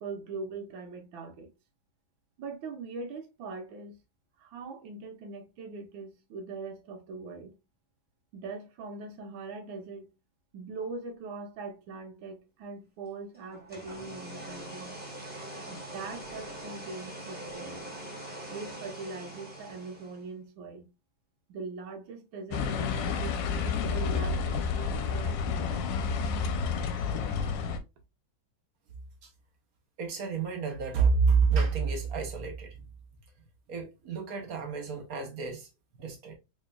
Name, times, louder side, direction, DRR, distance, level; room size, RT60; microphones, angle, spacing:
voice 1, 0.0-1.5 2.4-3.9 4.4-7.5 8.3-10.1 10.5-15.0 15.7-17.9 18.5-20.9 21.5-26.0, right 3 dB, 75° right, 1.6 m, -41 dB
sound 1, 13.5-20.3, right 1 dB, 5° right, 0.8 m, -43 dB
sound 2, 22.5-27.8, left 5 dB, 75° left, 1.2 m, -30 dB
voice 2, 30.0-32.8 33.7-35.7 36.0-36.4, right 5 dB, 55° right, 1.1 m, -28 dB
4.2 x 3.3 x 2.2 m
omnidirectional pair, 2.2 m